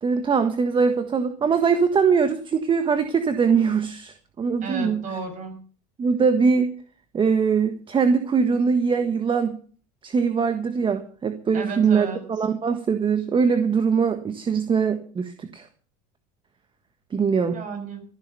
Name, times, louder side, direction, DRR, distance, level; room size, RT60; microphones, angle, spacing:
voice 1, 0.0-5.0 6.0-6.7 7.1-9.6 10.0-15.7 17.1-17.6, right 5 dB, 25° right, 9 dB, 1.5 m, -22 dB
voice 2, 4.6-5.6 11.5-12.2 17.5-18.0, right 4 dB, 40° right, 5 dB, 6.5 m, -33 dB
14.5 x 11.5 x 6.9 m, 0.43 s
supercardioid pair, 110°, 20 cm